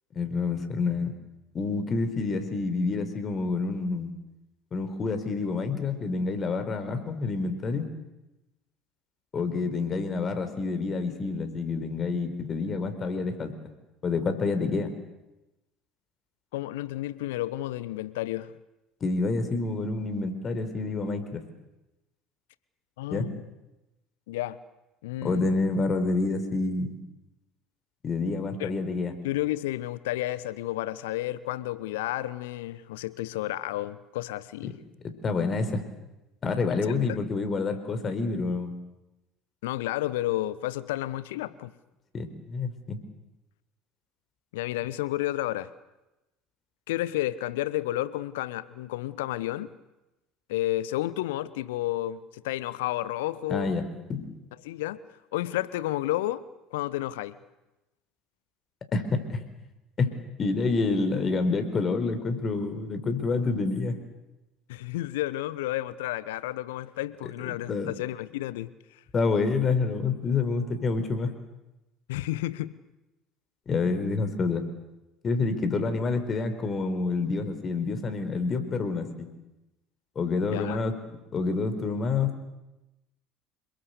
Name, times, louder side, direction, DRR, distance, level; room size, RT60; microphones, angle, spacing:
voice 1, 0.1-1.1 1.5-4.1 4.7-7.9 9.3-13.5 14.0-14.9 19.0-21.4 23.1-23.3 25.2-27.0 28.0-29.1 35.2-35.8 36.4-38.7 42.1-43.0 53.5-53.8 54.1-54.3 58.9-59.4 60.0-60.1 60.4-64.0 67.7-67.9 69.1-71.3 73.7-74.6 75.2-79.3 80.2-81.0 81.3-82.4, left 4 dB, 35° left, 8 dB, 4.4 m, -28 dB
voice 2, 16.5-18.5 23.0-23.4 24.3-24.6 25.0-25.5 28.6-28.8 29.2-34.8 36.8-37.2 39.6-41.7 44.5-45.7 46.9-49.7 50.5-53.8 54.6-55.0 55.3-56.4 56.7-57.4 64.7-68.7 72.1-72.7 80.5-80.8, left 15 dB, 65° left, 17 dB, 1.0 m, -31 dB
28.5 x 21.5 x 8.3 m, 0.98 s
figure-of-eight pair, 65°, 0 cm